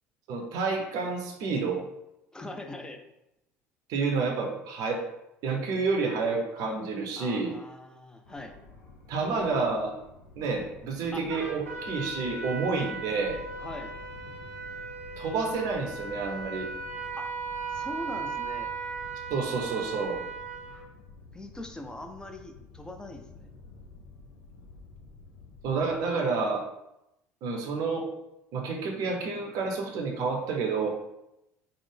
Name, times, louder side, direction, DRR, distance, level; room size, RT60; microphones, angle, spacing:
voice 1, 0.3-1.8 3.9-5.1 5.4-7.5 9.1-10.0 10.4-13.4 15.2-16.7 19.3-20.2 25.6-26.7 27.4-28.1 28.5-30.9, right 4 dB, 55° right, 1 dB, 0.6 m, -29 dB
voice 2, 2.3-3.0 7.2-8.6 11.1-11.3 13.6-13.9 17.2-17.3 17.7-18.7 21.3-23.5, left 1 dB, 10° left, 5 dB, 0.4 m, -41 dB
sound 1, 8.2-26.0, left 3 dB, 75° left, 0.5 m, -50 dB
Trumpet, 11.3-20.8, right 4 dB, 90° right, 0.7 m, -37 dB
3.3 x 2.0 x 3.3 m, 0.87 s
figure-of-eight pair, 60°, 8 cm